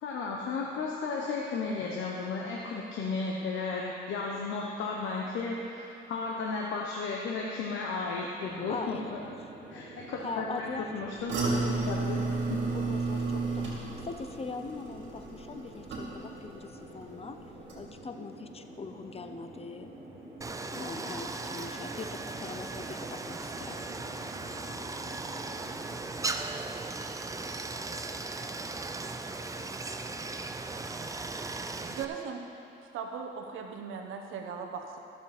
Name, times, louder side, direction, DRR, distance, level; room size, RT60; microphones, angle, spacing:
voice 1, 0.0-9.2 9.7-12.6, left 4 dB, 75° left, -2 dB, 1.1 m, -34 dB
sound 1, 8.4-26.0, right 2 dB, 30° right, 2.9 m, -48 dB
voice 2, 8.7-9.3 9.7-9.9 10.2-10.9 11.4-11.9 12.7-17.4 17.8-19.9 20.7-23.8, left 4 dB, 30° left, 7 dB, 0.7 m, -42 dB
sound 2, 11.3-16.5 16.8-17.3 17.7-17.8, right 3 dB, 65° right, 2.6 m, -32 dB
Stream, 20.4-32.1, right 3 dB, 15° right, 0.5 m, -37 dB
voice 3, 31.9-32.4 32.9-35.0, right 6 dB, 85° right, 3 dB, 1.1 m, -38 dB
15.0 x 7.2 x 4.3 m, 2.7 s
cardioid pair, 90°, 20 cm